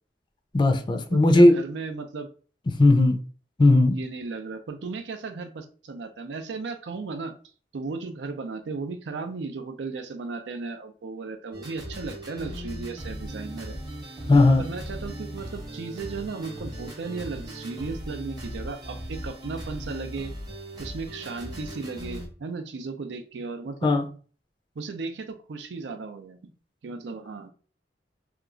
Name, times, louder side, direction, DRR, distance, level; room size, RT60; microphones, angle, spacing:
voice 1, 0.5-1.6 2.7-3.2 3.6-4.0 14.3-14.6 23.8-24.1, left 2 dB, 25° left, 0.4 m, -17 dB
voice 2, 1.1-2.3 3.9-7.3 7.7-13.8 14.6-20.3 20.8-23.9 24.8-26.5 26.8-27.5, right 4 dB, 80° right, 0.5 m, -35 dB
sound 1, 11.5-22.3, right 1 dB, 25° right, 0.8 m, -38 dB
2.8 x 2.3 x 2.4 m
head